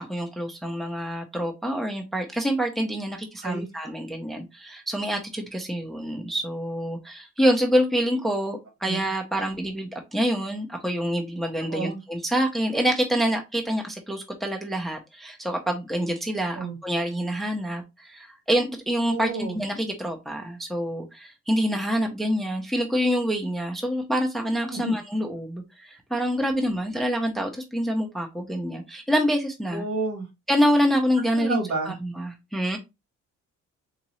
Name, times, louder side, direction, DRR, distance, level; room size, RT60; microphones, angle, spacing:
voice 1, 0.0-29.8 30.5-31.6 31.8-32.8, equal, ahead, 0.7 m, -26 dB
voice 2, 11.6-12.0 16.5-16.8 19.1-19.6 24.7-24.9 29.7-30.3 31.3-31.9, right 3 dB, 60° right, 2.2 m, -30 dB
3.9 x 2.6 x 3.1 m
cardioid pair, 90°, 30 cm